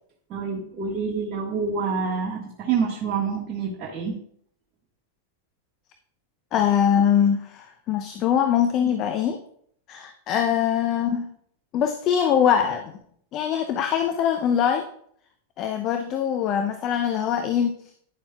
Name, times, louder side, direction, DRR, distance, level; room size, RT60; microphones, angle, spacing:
voice 1, 0.3-4.2, right 5 dB, 30° right, -4 dB, 1.6 m, -27 dB
voice 2, 6.5-9.4 9.9-11.3 11.7-12.9 13.3-14.9 15.6-17.7, left 8 dB, 35° left, 7 dB, 0.6 m, -22 dB
10.0 x 6.9 x 2.3 m, 0.66 s
figure-of-eight pair, 95°, 0 cm